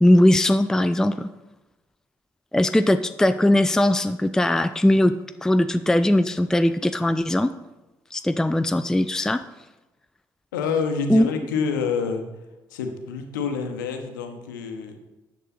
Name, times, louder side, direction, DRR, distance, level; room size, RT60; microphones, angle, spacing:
voice 1, 0.0-1.3 2.5-5.2 5.4-7.5 8.1-9.4 11.1-11.3, left 1 dB, 5° left, 10 dB, 0.4 m, -19 dB
voice 2, 10.5-12.3 12.7-15.0, left 5 dB, 80° left, 6 dB, 0.9 m, -27 dB
10.0 x 6.5 x 4.2 m, 1.1 s
figure-of-eight pair, 45°, 10 cm